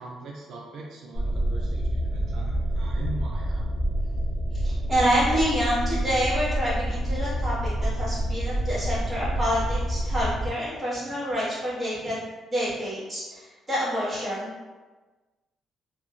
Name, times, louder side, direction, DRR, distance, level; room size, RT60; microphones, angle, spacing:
voice 1, 0.0-3.6, right 3 dB, 70° right, -2 dB, 0.3 m, -40 dB
sound 1, 1.1-10.5, right 1 dB, 45° left, 0.9 m, -27 dB
voice 2, 4.5-14.5, equal, 15° right, -8 dB, 1.4 m, -27 dB
2.8 x 2.0 x 2.5 m, 1.3 s
cardioid pair, 90°, 0 cm